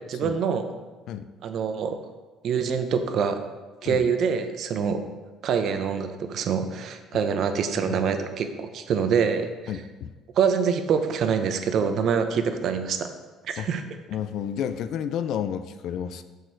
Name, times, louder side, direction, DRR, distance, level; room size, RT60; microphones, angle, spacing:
voice 1, 0.1-0.6 1.4-2.0 2.4-3.4 3.8-5.0 5.4-9.5 10.4-13.1 13.5-13.8, right 6 dB, 55° right, 8 dB, 0.8 m, -25 dB
voice 2, 7.8-8.2 9.7-10.1 13.6-13.7 14.1-16.2, left 9 dB, 65° left, 11 dB, 0.5 m, -31 dB
6.6 x 6.5 x 4.6 m, 1.3 s
cardioid pair, 125°, 0 cm